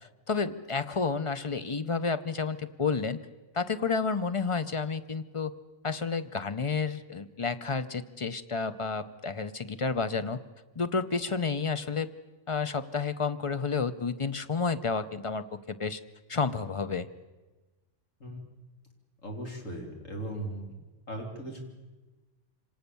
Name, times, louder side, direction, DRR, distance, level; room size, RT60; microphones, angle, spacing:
voice 1, 0.0-3.2 3.5-5.5 5.8-10.4 10.8-12.1 12.5-16.0 16.3-17.1, left 4 dB, 30° left, 12 dB, 0.7 m, -30 dB
voice 2, 19.2-20.7 21.1-21.6, right 1 dB, 90° left, 1 dB, 4.0 m, -38 dB
25.5 x 18.5 x 7.1 m, 1.2 s
omnidirectional pair, 1.3 m